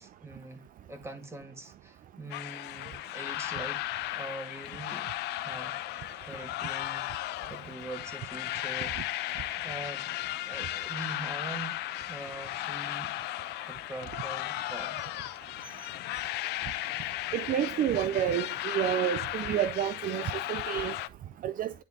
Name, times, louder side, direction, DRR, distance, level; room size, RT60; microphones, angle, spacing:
voice 1, 0.0-9.0 9.2-10.0 10.5-11.8 12.1-13.1 13.7-15.0, right 2 dB, 15° right, 2.3 m, -44 dB
sound 1, 2.3-21.1, left 16 dB, 80° left, 0.7 m, -35 dB
voice 2, 17.3-20.9 21.4-21.7, right 11 dB, 55° right, 0.6 m, -29 dB
10.5 x 4.0 x 3.7 m
cardioid pair, 110°, 17 cm